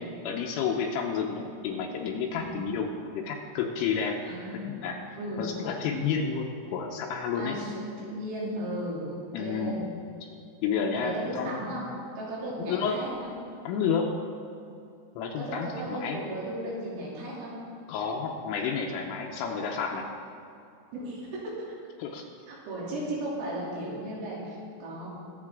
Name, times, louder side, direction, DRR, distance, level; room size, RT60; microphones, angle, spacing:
voice 1, 0.0-4.2 4.7-5.0 5.4-7.6 9.3-9.9 10.6-11.6 12.6-13.0 13.6-14.1 15.2-16.2 17.9-20.1 22.0-22.2, left 6 dB, 80° left, 0 dB, 3.2 m, -30 dB
voice 2, 4.2-4.7 5.2-5.5 7.4-9.9 10.9-11.9 12.2-13.3 15.4-17.5 20.9-21.5 22.5-25.1, right 1 dB, 80° right, -6 dB, 5.5 m, -35 dB
22.5 x 7.9 x 3.7 m, 2.6 s
omnidirectional pair, 5.9 m